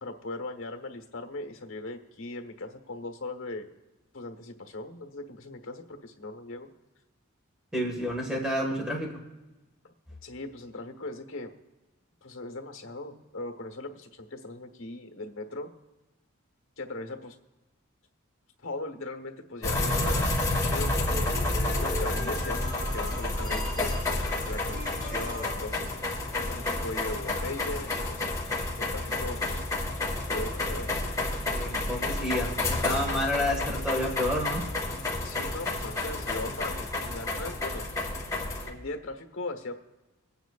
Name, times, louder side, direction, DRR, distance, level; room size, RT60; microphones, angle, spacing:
voice 1, 0.0-3.7 4.1-6.7 9.8-9.9 10.2-11.5 12.2-15.7 16.8-17.4 18.6-21.4 21.8-24.0 24.5-26.1 26.4-28.3 28.8-29.6 30.2-30.9 35.2-37.9 38.7-39.7, left 2 dB, 60° left, 5 dB, 1.2 m, -39 dB
voice 2, 7.7-9.2 31.5-34.6, left 1 dB, 5° right, -1 dB, 1.6 m, -30 dB
sound 1, 19.6-38.7, left 2 dB, 15° left, 1.7 m, -30 dB
sound 2, 19.7-25.5, left 1 dB, 20° right, 5.0 m, -37 dB
24.5 x 9.1 x 2.4 m, 1.1 s
head